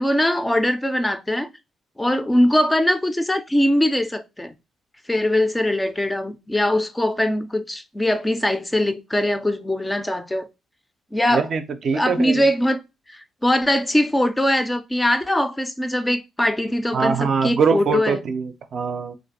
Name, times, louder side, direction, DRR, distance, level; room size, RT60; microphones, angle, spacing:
voice 1, 0.0-1.5 2.0-4.5 5.1-10.5 11.1-11.5 11.9-12.8 13.1-18.2, left 1 dB, 10° left, 0.4 m, -21 dB
voice 2, 11.3-12.4 16.9-19.1, right 5 dB, 55° right, 0.4 m, -23 dB
2.5 x 2.3 x 4.0 m
cardioid pair, 90°, 0 cm